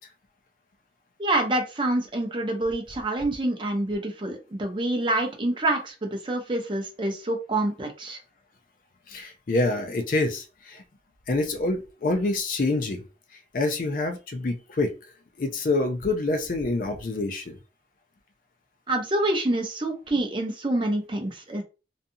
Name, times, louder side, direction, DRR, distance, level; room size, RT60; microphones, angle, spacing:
voice 1, 1.2-8.2 18.9-21.6, right 1 dB, 30° right, 3 dB, 0.6 m, -27 dB
voice 2, 9.1-10.8 11.3-13.0 13.5-14.9 15.4-17.6, left 2 dB, 50° left, 6 dB, 0.4 m, -26 dB
2.6 x 2.3 x 2.7 m, 0.31 s
head